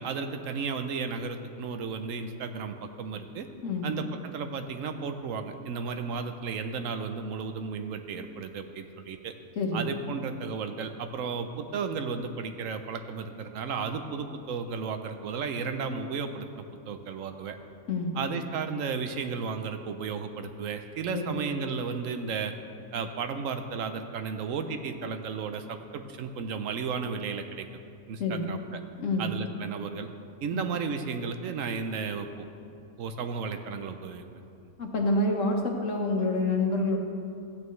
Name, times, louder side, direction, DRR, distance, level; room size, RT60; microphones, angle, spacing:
voice 1, 0.0-3.5 3.8-9.3 9.7-17.6 18.2-22.5 22.9-27.7 28.1-28.8 29.2-30.1 30.4-32.5 33.0-34.2 34.6-34.7, right 5 dB, 70° right, 7 dB, 1.0 m, -34 dB
voice 2, 28.2-28.5 29.0-29.3 30.5-30.6 34.8-37.0, left 2 dB, 65° left, 1 dB, 1.4 m, -27 dB
14.5 x 9.0 x 3.1 m, 2.5 s
omnidirectional pair, 1.4 m